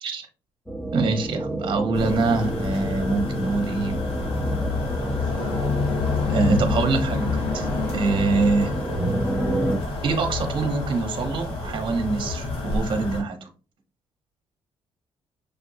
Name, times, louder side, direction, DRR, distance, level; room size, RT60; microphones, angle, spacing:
sound 1, 0.7-9.8, right 1 dB, 5° left, 0.6 m, -30 dB
voice 1, 0.9-4.0 6.3-7.7 7.9-8.7 10.0-13.4, right 3 dB, 50° right, 6 dB, 0.9 m, -24 dB
sound 2, 1.9-13.2, left 3 dB, 85° left, 1.3 m, -28 dB
6.7 x 2.6 x 2.6 m, 0.36 s
cardioid pair, 100°, 10 cm